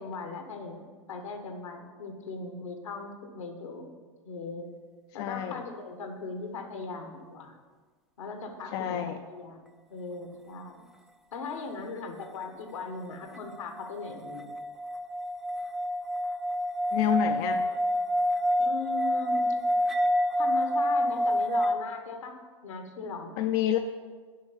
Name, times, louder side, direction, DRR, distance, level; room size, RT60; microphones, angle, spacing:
voice 1, 0.0-3.9 4.2-4.7 5.1-7.5 8.2-10.8 11.3-14.5 18.6-19.6 20.3-22.3 22.6-23.3, left 4 dB, 85° left, 5 dB, 1.4 m, -39 dB
voice 2, 5.2-5.6 8.7-9.2 16.9-17.7 23.4-23.8, left 9 dB, 55° left, 6 dB, 0.5 m, -28 dB
sound 1, 13.3-21.7, equal, ahead, 0.4 m, -28 dB
7.4 x 5.3 x 6.9 m, 1.5 s
hypercardioid pair, 100°, 16 cm